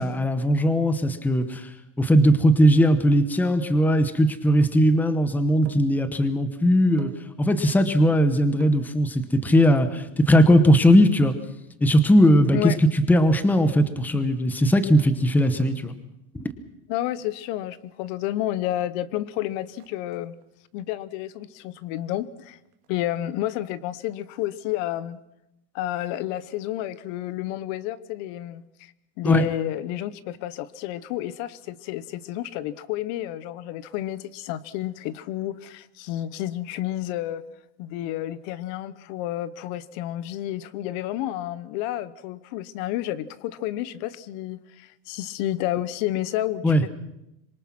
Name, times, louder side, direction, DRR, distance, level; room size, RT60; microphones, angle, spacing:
voice 1, 0.0-1.7 2.0-7.1 7.4-11.4 11.8-15.9 16.3-16.5 29.2-29.4 46.6-46.8, equal, 5° left, 11 dB, 1.0 m, -19 dB
sound 1, 5.2-6.0 6.8-7.3 8.5-8.9 9.6-12.0 12.7-13.0 14.1-14.5 15.3-15.4 15.6-15.9 17.1-17.6 17.9-18.0 18.2-18.4 18.7-19.1 19.4-20.5 20.9-21.3 21.7-22.9 23.1-23.2, right 11 dB, 75° right, 2.3 m, -42 dB
voice 2, 16.9-20.3 20.7-22.6 22.9-25.2 25.7-28.9 29.2-37.4 37.8-46.9, left 13 dB, 55° left, 17 dB, 1.0 m, -30 dB
26.0 x 23.0 x 6.0 m, 0.86 s
cardioid pair, 170°, 39 cm